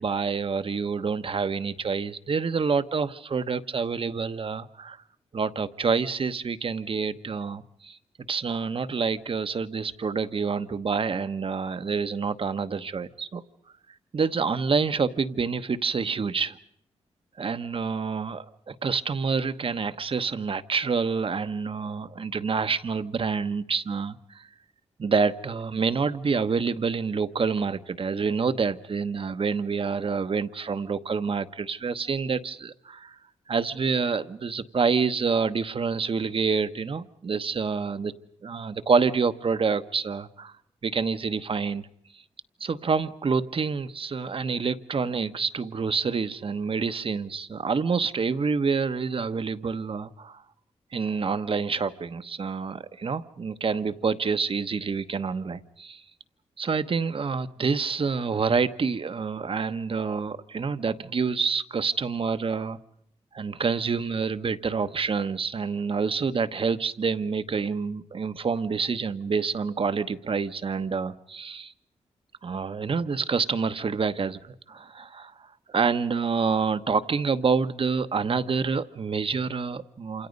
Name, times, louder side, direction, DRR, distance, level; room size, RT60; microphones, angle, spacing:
voice 1, 0.0-5.0 5.3-8.0 8.3-13.4 14.1-16.6 17.4-24.5 25.0-33.2 33.5-38.1 38.4-40.5 40.8-41.9 42.1-42.2 42.6-50.4 50.9-56.0 56.6-62.8 63.3-71.7 72.4-75.3 75.7-80.3, right 5 dB, 50° right, 12 dB, 1.1 m, -27 dB
27.5 x 27.0 x 5.3 m, 0.72 s
cardioid pair, 75°, 12 cm